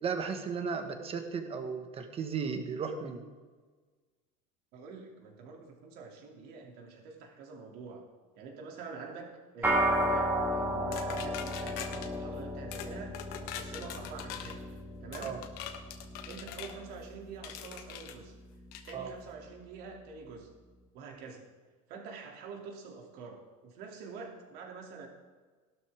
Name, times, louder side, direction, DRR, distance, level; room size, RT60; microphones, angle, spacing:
voice 1, 0.0-3.2 15.2-15.4 18.9-19.1, right 5 dB, 35° right, 6 dB, 1.6 m, -35 dB
voice 2, 4.7-8.0 8.4-14.6 15.0-15.4 16.3-18.3 18.9-20.5 20.9-21.5 21.9-25.1, right 5 dB, 60° right, 1 dB, 2.9 m, -46 dB
sound 1, 9.6-19.2, equal, 10° right, 2.1 m, -34 dB
sound 2, 10.9-12.1 12.7-12.9 13.1-14.6 15.1-16.8 17.4-18.2 18.7-19.0, left 10 dB, 60° left, 1.3 m, -43 dB
16.0 x 12.5 x 3.7 m, 1.4 s
supercardioid pair, 120°, 18 cm